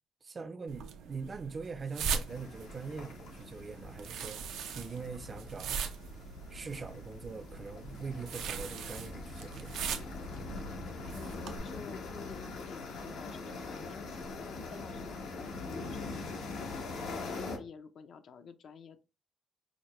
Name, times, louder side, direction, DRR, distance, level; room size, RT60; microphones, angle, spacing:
voice 1, 0.2-5.8 6.5-9.8, right 4 dB, 35° right, 0.5 m, -42 dB
sound 1, 0.7-11.6, right 6 dB, 85° right, 0.6 m, -41 dB
sound 2, 2.3-17.6, left 3 dB, 90° left, 1.0 m, -43 dB
voice 2, 11.1-19.0, left 6 dB, 60° left, 0.5 m, -50 dB
5.0 x 2.1 x 3.1 m
cardioid pair, 90°, 0 cm